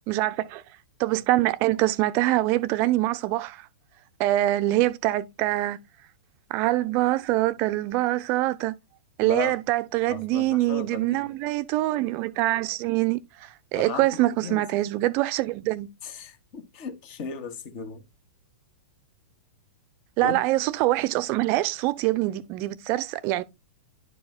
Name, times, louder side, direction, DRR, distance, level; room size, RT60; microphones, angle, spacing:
voice 1, 0.1-0.6 1.0-3.6 4.2-5.8 6.5-8.8 9.2-15.9 20.2-23.4, right 17 dB, 40° right, 0.6 m, -24 dB
voice 2, 9.2-9.5 10.1-11.2 13.8-14.6 16.0-18.0 20.2-20.3, left 6 dB, 45° left, 1.7 m, -36 dB
11.0 x 4.8 x 2.2 m
figure-of-eight pair, 105°, 6 cm